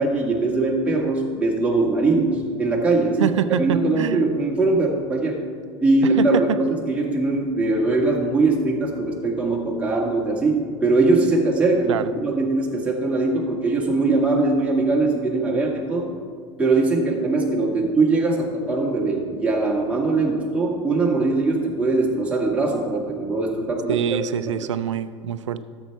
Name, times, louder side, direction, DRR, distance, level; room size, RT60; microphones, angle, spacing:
voice 1, 0.0-3.3 3.6-5.4 5.8-16.1 16.6-24.0 24.6-24.7, right 3 dB, 10° right, -3 dB, 1.8 m, -21 dB
voice 2, 3.2-4.3 6.2-6.4 11.9-12.1 23.9-25.6, right 9 dB, 75° right, 13 dB, 0.5 m, -24 dB
13.0 x 7.2 x 4.6 m, 2.1 s
figure-of-eight pair, 80°, 16 cm